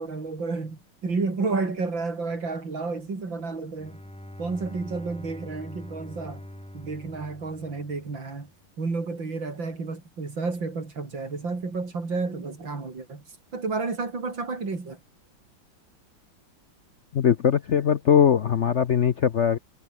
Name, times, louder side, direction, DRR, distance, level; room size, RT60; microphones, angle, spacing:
voice 1, 0.0-4.0 4.4-6.4 6.7-8.5 8.8-13.2 13.5-15.0, right 4 dB, 80° right, 5.0 m, -31 dB
Bowed string instrument, 3.7-8.4, equal, 5° left, 1.6 m, -43 dB
voice 2, 17.1-19.6, left 8 dB, 60° left, 0.7 m, -21 dB
omnidirectional pair, 2.1 m